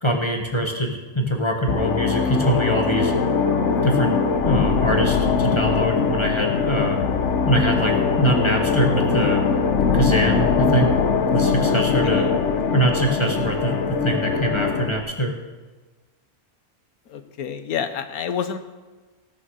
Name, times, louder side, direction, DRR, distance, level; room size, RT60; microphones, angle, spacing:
voice 1, 0.0-3.1 3.8-7.0 7.5-9.4 9.9-10.9 11.3-12.3 12.7-15.3, right 1 dB, 20° left, 2 dB, 1.3 m, -23 dB
sound 1, 1.7-15.0, left 5 dB, 60° left, 1.2 m, -21 dB
voice 2, 11.7-12.3 17.1-18.6, left 8 dB, 90° left, 9 dB, 1.4 m, -29 dB
17.5 x 6.5 x 6.3 m, 1.3 s
omnidirectional pair, 1.5 m